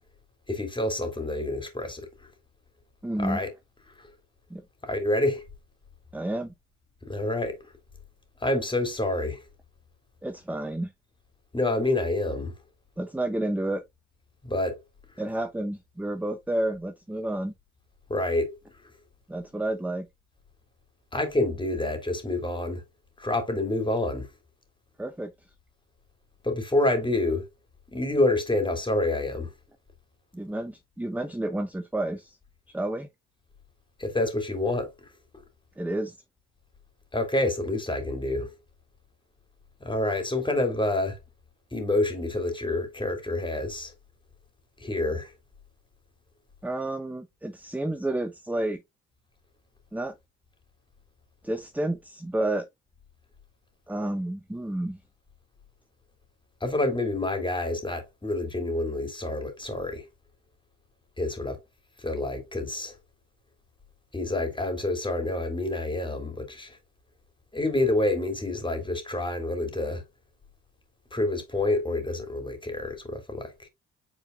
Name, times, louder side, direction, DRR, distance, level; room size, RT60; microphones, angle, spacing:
voice 1, 0.5-2.3 3.2-3.5 4.0-4.1 4.8-5.5 7.1-7.6 8.4-9.4 11.5-12.5 14.4-14.8 18.1-18.6 21.1-22.8 23.2-24.3 26.4-27.4 27.9-29.5 34.0-34.9 37.1-38.6 39.8-41.2 41.7-43.9 44.8-45.3 56.6-60.0 61.2-61.6 62.0-62.9 64.1-66.8 67.5-70.0 71.1-73.7, left 2 dB, 15° left, 2.9 m, -28 dB
voice 2, 3.0-3.4 4.5-4.6 6.1-6.5 10.2-10.9 13.0-13.8 15.2-17.5 19.3-20.1 25.0-25.3 30.3-32.4 32.7-33.1 35.8-36.2 46.6-48.8 49.9-50.2 51.4-52.7 53.9-55.0, right 1 dB, 5° right, 0.7 m, -30 dB
8.8 x 4.5 x 2.5 m
cardioid pair, 90°, 30 cm